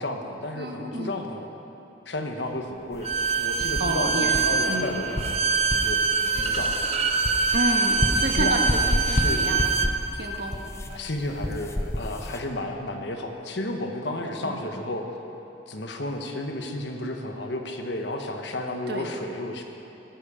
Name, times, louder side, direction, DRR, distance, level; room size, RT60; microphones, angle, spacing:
voice 1, 0.0-1.5 2.0-3.1 3.4-5.4 5.7-6.9 8.1-8.6 9.1-9.4 9.7-9.9 10.9-15.1 15.7-19.6, left 1 dB, 70° left, 4 dB, 1.3 m, -32 dB
voice 2, 0.5-1.1 3.8-4.8 7.5-9.6 10.1-10.6 14.4-14.6 18.9-19.0, right 1 dB, 60° right, 1 dB, 1.6 m, -30 dB
sound 1, 2.9-12.4, left 1 dB, 15° left, 0.7 m, -31 dB
Bowed string instrument, 3.0-9.9, right 4 dB, 35° right, 0.6 m, -24 dB
18.0 x 10.5 x 5.1 m, 3.0 s
head